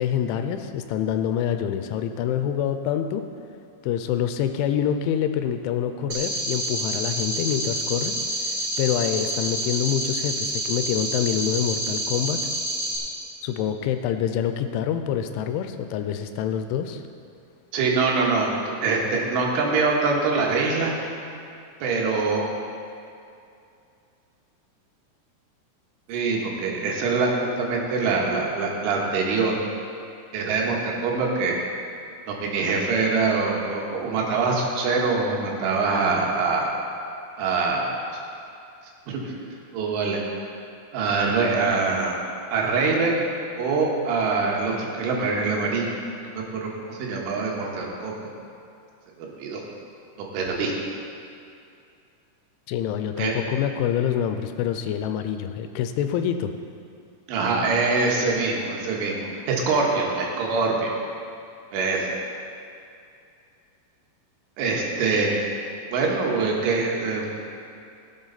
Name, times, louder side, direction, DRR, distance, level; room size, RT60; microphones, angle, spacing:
voice 1, 0.0-3.2 3.8-12.4 13.4-17.0 52.7-56.5, left 9 dB, 85° left, 8 dB, 2.9 m, -26 dB
sound 1, 6.1-13.0, right 1 dB, 50° right, 2.5 m, -28 dB
voice 2, 17.7-21.0 21.8-22.5 26.1-29.6 30.3-31.6 32.3-36.7 37.4-37.9 39.1-40.2 40.9-42.2 42.5-43.2 43.6-46.0 46.3-48.3 49.2-49.6 50.3-50.7 53.2-53.3 57.3-60.9 61.7-62.1 64.6-65.3 65.9-67.3, right 4 dB, 85° right, -2 dB, 3.9 m, -24 dB
17.0 x 7.7 x 4.0 m, 2.5 s
omnidirectional pair, 5.5 m